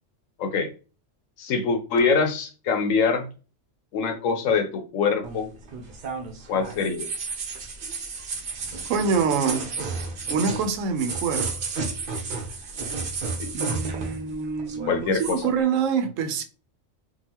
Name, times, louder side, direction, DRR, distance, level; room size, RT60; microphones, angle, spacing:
voice 1, 0.4-0.7 1.4-3.3 3.9-5.5 6.5-7.1 13.4-13.5 14.8-15.5, left 5 dB, 85° left, 1.1 m, -24 dB
sound 1, 5.2-14.3 14.6-15.5, right 4 dB, 50° right, 0.7 m, -32 dB
voice 2, 8.9-9.6 10.3-11.5 13.5-16.4, right 5 dB, 85° right, 1.0 m, -25 dB
3.8 x 2.3 x 2.8 m
omnidirectional pair, 1.3 m